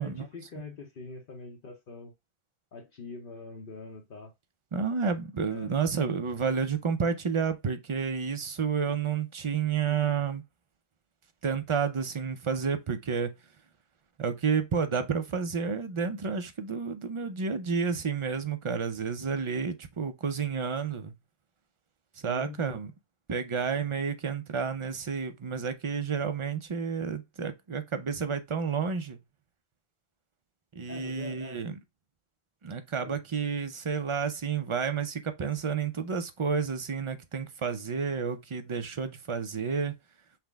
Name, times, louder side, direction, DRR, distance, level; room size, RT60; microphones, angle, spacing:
voice 1, 0.0-2.1 2.7-4.3 5.5-5.7 22.2-22.6 30.9-31.6 33.0-33.2, left 4 dB, 60° left, 0.9 m, -44 dB
voice 2, 4.7-10.4 11.4-13.4 14.2-21.1 22.1-22.9 23.3-29.2 30.7-31.8 32.6-39.9, right 6 dB, 40° right, 0.4 m, -30 dB
5.8 x 2.1 x 3.3 m
omnidirectional pair, 1.0 m